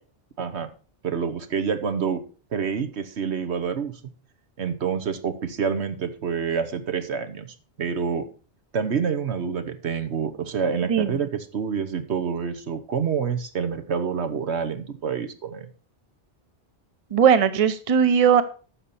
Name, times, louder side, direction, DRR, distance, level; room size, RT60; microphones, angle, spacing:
voice 1, 0.4-0.7 1.0-2.2 2.5-4.0 4.6-8.3 8.7-15.7, right 6 dB, 75° right, 9 dB, 1.3 m, -27 dB
voice 2, 10.9-11.2 17.1-18.4, right 7 dB, 35° right, 12 dB, 0.8 m, -18 dB
12.0 x 7.0 x 4.2 m, 0.37 s
omnidirectional pair, 1.1 m